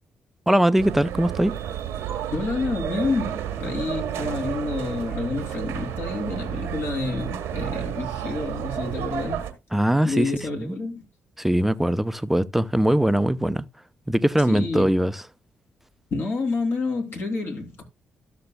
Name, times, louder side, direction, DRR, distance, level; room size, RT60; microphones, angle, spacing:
voice 1, 0.5-1.5 9.7-10.3 10.6-10.7 11.4-13.6 14.1-15.2, right 1 dB, 5° right, 0.6 m, -21 dB
sound 1, 0.8-9.5, right 10 dB, 75° right, 1.1 m, -31 dB
voice 2, 2.3-9.4 10.0-11.0 14.5-14.9 16.1-17.8, left 3 dB, 55° left, 2.9 m, -28 dB
13.0 x 6.8 x 2.2 m
hypercardioid pair, 45°, 5 cm